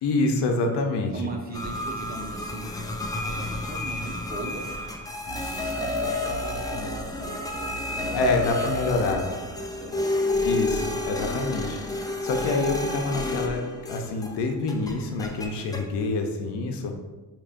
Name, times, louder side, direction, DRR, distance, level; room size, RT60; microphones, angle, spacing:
voice 1, 0.0-1.2 8.1-9.2 10.4-11.8 12.2-16.9, left 3 dB, 85° left, 3 dB, 0.7 m, -26 dB
voice 2, 1.1-4.7 5.3-5.9 6.3-10.4, right 3 dB, 25° right, 1 dB, 0.8 m, -40 dB
sound 1, 1.5-14.4 14.7-15.9, left 1 dB, 10° left, 0.3 m, -30 dB
Chewing mastication, 5.1-9.3 9.5-9.6 10.0-10.7, left 1 dB, 55° left, 1.4 m, -48 dB
6.9 x 3.0 x 2.5 m, 1.2 s
cardioid pair, 115°, 40 cm